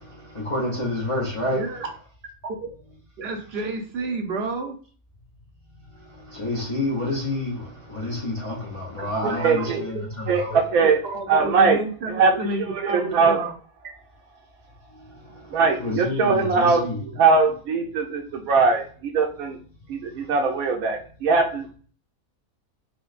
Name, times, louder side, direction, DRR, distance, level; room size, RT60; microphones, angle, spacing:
voice 1, 0.0-1.7 6.0-10.6 15.3-17.0, left 2 dB, 60° left, 0.3 m, -29 dB
voice 2, 1.5-1.9 2.4-2.7 3.2-4.8 9.2-10.0 10.5-10.6 11.0-13.5, right 3 dB, 60° right, 0.7 m, -30 dB
voice 3, 9.4-9.8 10.3-11.0 11.3-11.8 12.1-12.3 12.7-13.4 15.5-19.6 19.9-21.7, right 4 dB, 75° right, 1.0 m, -21 dB
4.4 x 2.1 x 2.4 m
omnidirectional pair, 1.5 m